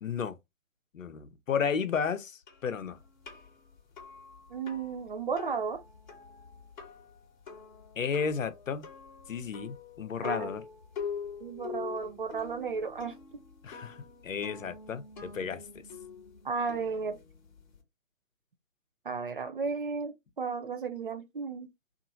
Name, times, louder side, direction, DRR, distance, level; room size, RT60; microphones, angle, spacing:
voice 1, 0.0-0.4 0.9-3.0 8.0-8.9 9.3-10.6 13.6-15.8, left 6 dB, 75° left, 0.6 m, -33 dB
sound 1, 2.5-17.8, left 6 dB, 35° left, 1.0 m, -45 dB
voice 2, 4.5-5.8 10.2-10.5 11.4-13.2 16.4-17.2 19.1-21.7, right 5 dB, 45° right, 0.4 m, -34 dB
2.8 x 2.5 x 2.6 m
figure-of-eight pair, 135°, 40 cm